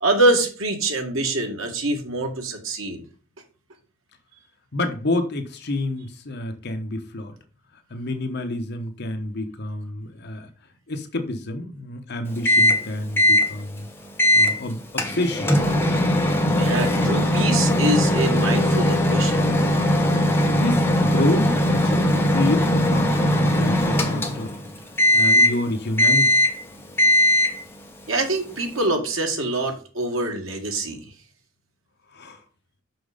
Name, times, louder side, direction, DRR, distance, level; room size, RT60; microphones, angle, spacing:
voice 1, 0.0-3.0 16.6-19.5 28.1-31.1, right 2 dB, 80° right, 1.9 m, -24 dB
voice 2, 4.7-7.4 7.9-10.5 10.9-13.9 14.3-15.5 20.5-24.5 25.1-26.4 32.1-32.4, left 1 dB, 55° left, 1.1 m, -28 dB
Microwave oven, 12.5-12.9 13.2-13.5 14.2-14.5 15.0-24.6 25.0-25.6 26.0-26.6 27.0-27.6, left 1 dB, 10° left, 1.3 m, -19 dB
6.1 x 6.1 x 5.1 m
head